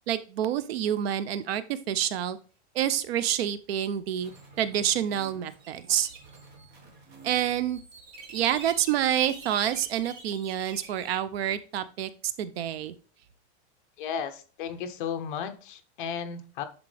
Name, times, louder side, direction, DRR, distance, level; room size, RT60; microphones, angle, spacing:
voice 1, 0.1-2.4 2.7-4.3 4.6-6.1 7.2-7.8 8.3-12.1 12.4-12.9, right 10 dB, 60° right, 15 dB, 0.6 m, -28 dB
sound 1, 4.2-11.2, right 3 dB, 30° right, 1.5 m, -47 dB
voice 2, 14.0-16.6, left 7 dB, 45° left, 9 dB, 0.8 m, -34 dB
10.5 x 3.7 x 3.3 m, 0.38 s
supercardioid pair, 170°, 34 cm